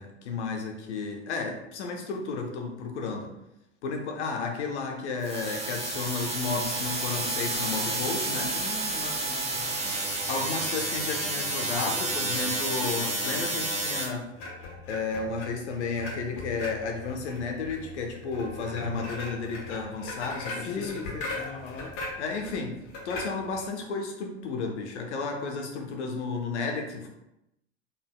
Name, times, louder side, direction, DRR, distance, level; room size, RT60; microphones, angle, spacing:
voice 1, 0.0-3.3 3.8-8.6 10.3-14.3 14.9-20.9 22.2-27.1, left 4 dB, 70° left, 3 dB, 0.8 m, -33 dB
sound 1, 5.2-14.0, right 2 dB, 15° right, 1.1 m, -30 dB
voice 2, 8.5-9.9 20.7-21.9, left 4 dB, 20° left, 2 dB, 0.5 m, -39 dB
sound 2, 14.4-23.7, left 2 dB, 55° left, 1.2 m, -39 dB
4.2 x 3.4 x 2.2 m, 0.86 s
hypercardioid pair, 85°, 36 cm